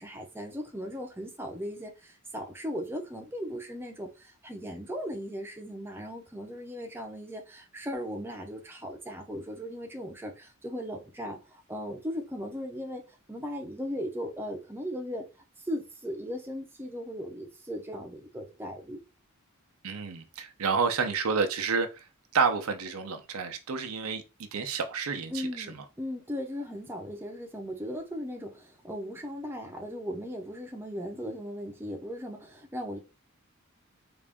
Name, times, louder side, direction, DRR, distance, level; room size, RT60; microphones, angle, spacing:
voice 1, 0.0-13.0 13.3-15.2 15.6-19.0 25.3-33.0, equal, 10° right, 0.6 m, -37 dB
voice 2, 19.8-22.1 22.3-25.8, right 5 dB, 85° right, 0.6 m, -30 dB
3.7 x 2.5 x 3.5 m
head